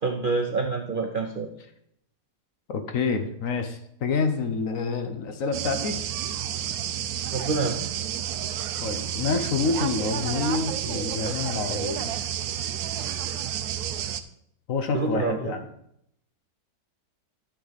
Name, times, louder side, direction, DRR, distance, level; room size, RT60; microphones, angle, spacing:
voice 1, 0.0-1.5 7.3-7.8 14.9-15.5, right 4 dB, 55° right, 3 dB, 0.6 m, -27 dB
voice 2, 2.7-6.0 8.8-12.1 14.7-15.7, left 4 dB, 60° left, 7 dB, 1.1 m, -27 dB
sound 1, 5.5-14.2, right 10 dB, 70° right, 1.0 m, -30 dB
11.5 x 6.4 x 4.0 m, 0.74 s
omnidirectional pair, 1.8 m